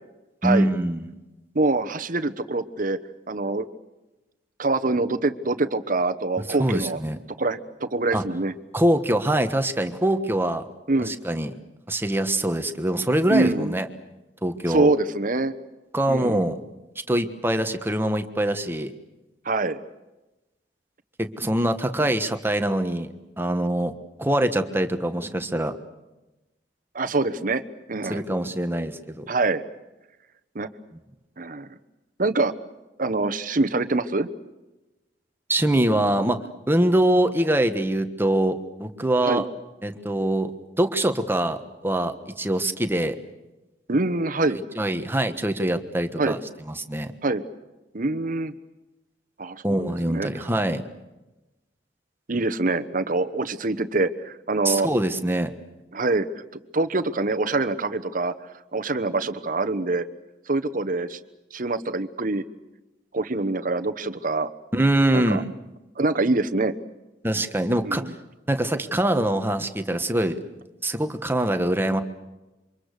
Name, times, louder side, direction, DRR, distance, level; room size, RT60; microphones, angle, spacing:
voice 1, 0.4-1.1 6.6-7.2 8.1-8.2 8.7-10.6 11.0-11.5 11.9-13.9 14.4-14.9 15.9-16.6 17.1-18.9 21.2-23.9 24.2-25.7 28.1-29.3 35.5-36.4 36.7-39.4 39.8-40.5 40.8-41.6 41.8-43.2 44.5-46.4 46.7-47.1 49.6-50.8 54.6-55.5 64.7-65.5 67.2-68.0 68.5-70.4 70.8-72.0, right 1 dB, 15° right, 8 dB, 1.4 m, -23 dB
voice 2, 1.5-3.0 3.3-3.7 4.6-7.0 7.4-8.5 10.9-11.1 13.3-13.7 14.7-15.5 16.1-16.5 19.4-19.8 26.9-27.6 27.9-28.2 29.3-29.6 30.5-30.7 31.4-31.7 32.2-32.5 33.0-34.3 39.2-39.4 43.9-44.6 46.2-46.4 47.2-47.4 47.9-48.5 49.4-49.8 50.1-50.3 52.3-54.9 55.9-56.3 56.7-58.3 58.7-60.1 60.5-61.2 61.5-62.4 63.1-64.5 65.1-65.4 66.0-66.7 67.8-68.1, right 2 dB, 50° right, 11 dB, 1.1 m, -24 dB
28.0 x 25.0 x 6.7 m, 1.1 s
head